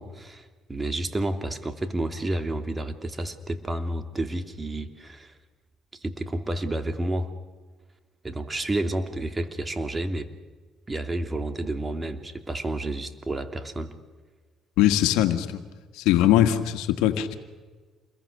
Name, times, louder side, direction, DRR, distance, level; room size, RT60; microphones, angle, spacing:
voice 1, 0.0-5.4 5.9-7.3 8.2-10.3 10.9-14.0, right 1 dB, 25° right, 7 dB, 2.8 m, -30 dB
voice 2, 14.8-15.6 15.9-17.4, left 12 dB, 80° left, 8 dB, 1.7 m, -21 dB
28.5 x 22.0 x 6.8 m, 1.4 s
supercardioid pair, 70°, 0 cm